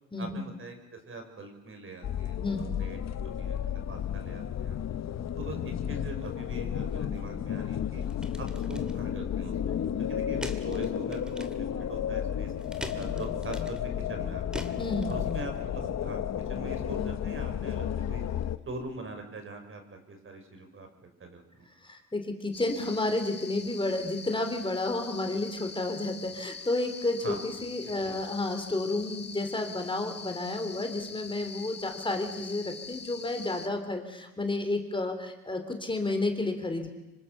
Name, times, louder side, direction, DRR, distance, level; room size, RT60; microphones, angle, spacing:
voice 1, 0.2-3.0 3.2-4.8 5.4-8.0 8.4-9.8 10.1-12.5 12.9-14.4 15.1-16.2 16.5-18.2 18.7-21.7 27.2-28.3, right 2 dB, 45° right, 5 dB, 5.7 m, -43 dB
sound 1, 2.0-18.6, left 9 dB, 60° left, 1.3 m, -32 dB
voice 2, 2.4-2.8 14.8-15.4 21.8-36.9, left 2 dB, 15° left, 5 dB, 3.5 m, -31 dB
sound 2, 6.9-15.6, equal, 5° right, 2.6 m, -45 dB
sound 3, 22.5-33.7, left 5 dB, 35° left, 2.1 m, -44 dB
26.5 x 24.5 x 6.8 m, 1.0 s
cardioid pair, 90°, 30 cm